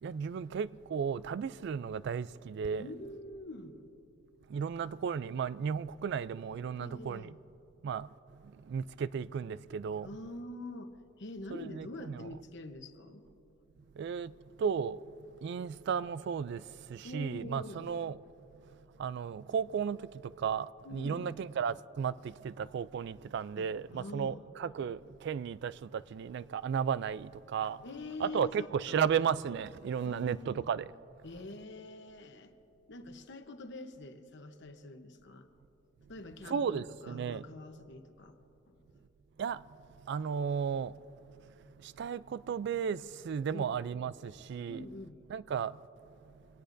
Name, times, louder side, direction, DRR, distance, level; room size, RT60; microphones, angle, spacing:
voice 1, 0.0-2.9 4.5-7.3 7.8-8.1 8.7-10.1 11.5-12.3 14.0-14.3 14.6-15.0 15.4-16.6 16.9-18.2 19.0-27.8 28.2-30.9 36.5-37.4 39.4-39.6 40.1-40.9 41.8-44.9 45.3-45.8, right 7 dB, 60° right, 0.3 m, -34 dB
voice 2, 2.8-3.9 6.8-7.3 10.0-13.2 17.0-17.9 20.8-21.4 23.6-24.5 27.8-29.1 30.0-30.7 31.2-32.5 32.9-35.5 36.1-38.3 38.7-38.8 43.5-43.8 44.7-45.2, left 2 dB, 60° left, 1.0 m, -45 dB
24.0 x 18.0 x 2.6 m
head